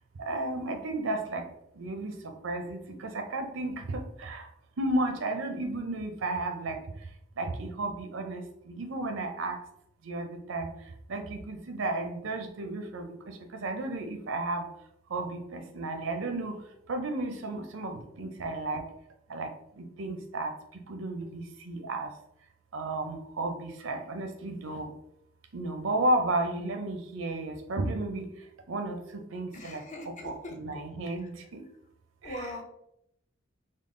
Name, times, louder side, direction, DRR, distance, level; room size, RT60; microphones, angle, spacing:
voice 1, 0.2-1.5 1.8-4.5 4.8-6.8 7.4-9.6 10.0-10.7 11.1-14.7 15.1-16.6 16.9-18.8 19.3-19.5 19.8-22.1 22.7-24.9 25.5-28.3 28.7-31.6 32.2-32.5, right 2 dB, 75° right, 5 dB, 0.6 m, -33 dB
voice 2, 29.5-30.5 32.2-32.6, left 1 dB, 35° left, 1 dB, 0.6 m, -40 dB
3.7 x 2.1 x 3.7 m, 0.76 s
head